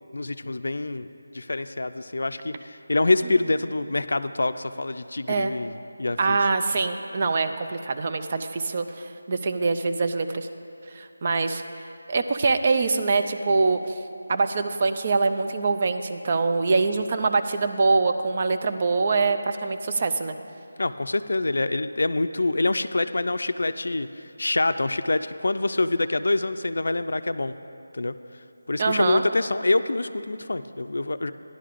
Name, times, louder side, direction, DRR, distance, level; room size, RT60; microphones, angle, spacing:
voice 1, 0.1-1.1 1.3-5.7 6.0-6.4 20.8-27.5 27.9-28.1 28.7-31.3, left 2 dB, 70° left, 10 dB, 0.4 m, -26 dB
voice 2, 6.2-10.5 10.9-11.6 12.1-14.0 14.3-20.3 28.8-29.2, right 4 dB, 35° right, 7 dB, 0.4 m, -24 dB
15.0 x 11.0 x 2.5 m, 2.7 s
figure-of-eight pair, 170°, 0 cm